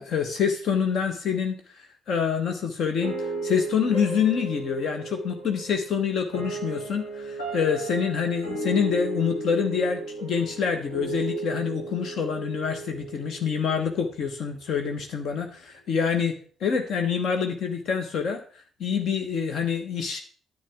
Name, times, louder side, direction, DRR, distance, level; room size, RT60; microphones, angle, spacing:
voice 1, 0.0-18.4 18.8-20.2, left 6 dB, 55° left, 6 dB, 1.1 m, -26 dB
sound 1, 3.0-14.1, right 3 dB, 75° left, 2.7 m, -35 dB
10.5 x 7.8 x 3.5 m, 0.43 s
figure-of-eight pair, 45°, 0 cm